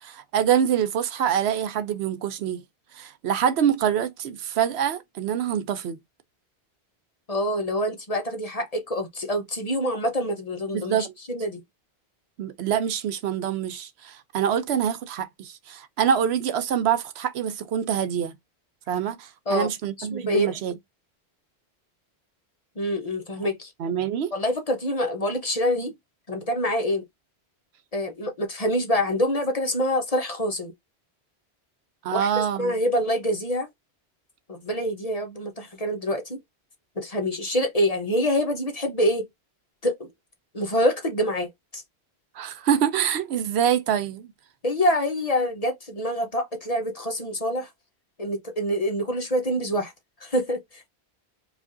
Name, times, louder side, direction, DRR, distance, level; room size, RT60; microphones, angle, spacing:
voice 1, 0.0-2.6 2.9-6.0 10.7-11.1 12.4-18.3 18.9-20.7 23.4-23.5 23.8-24.3 32.0-32.7 42.4-44.3, right 9 dB, 75° right, 0.8 m, -25 dB
voice 2, 7.3-11.6 19.5-19.7 20.0-20.5 22.8-23.7 24.3-25.9 26.3-27.0 27.9-30.7 32.1-32.3 32.6-33.7 34.5-36.4 37.0-39.3 39.8-40.1 40.5-41.8 44.6-47.7 48.2-49.9 50.2-50.9, equal, 40° left, 0.8 m, -26 dB
4.8 x 2.4 x 2.5 m
omnidirectional pair, 1.1 m